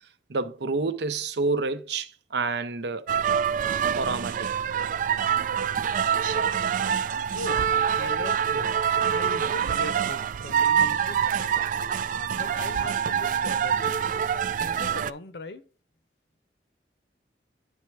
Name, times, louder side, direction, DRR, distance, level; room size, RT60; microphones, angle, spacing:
voice 1, 0.3-3.1 3.9-4.7 5.8-5.9, right 3 dB, 70° right, 0.7 m, -29 dB
sound 1, 3.1-15.1, right 8 dB, 50° right, 0.3 m, -25 dB
voice 2, 7.3-7.7 8.0-8.8 9.1-11.6 12.3-14.2 14.6-15.6, left 2 dB, 70° left, 0.8 m, -40 dB
10.0 x 3.5 x 4.6 m
head